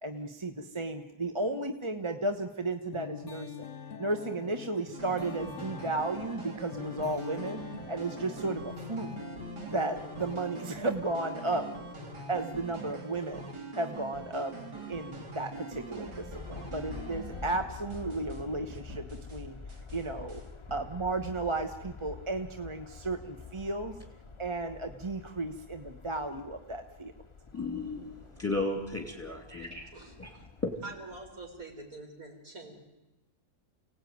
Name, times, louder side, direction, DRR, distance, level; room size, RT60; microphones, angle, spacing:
voice 1, 0.0-3.7 4.0-7.6 7.9-9.1 9.7-11.7 12.3-13.5 13.7-14.5 14.9-19.0 19.3-19.6 19.9-20.4 20.7-23.9 24.4-27.1, right 2 dB, 20° right, 6 dB, 1.0 m, -34 dB
sound 1, 2.9-13.5, left 7 dB, 50° left, 1.4 m, -46 dB
sound 2, 4.9-18.4 18.7-19.4 19.7-20.8, right 3 dB, 85° right, 3.4 m, -44 dB
Aircraft, 15.8-31.8, left 5 dB, 25° left, 0.8 m, -47 dB
voice 2, 27.5-29.8 30.2-30.8, left 2 dB, 10° left, 3 dB, 3.0 m, -34 dB
voice 3, 29.5-30.1 30.8-32.7, right 2 dB, 55° right, 1 dB, 5.3 m, -45 dB
30.0 x 18.0 x 9.5 m, 1.0 s
omnidirectional pair, 1.7 m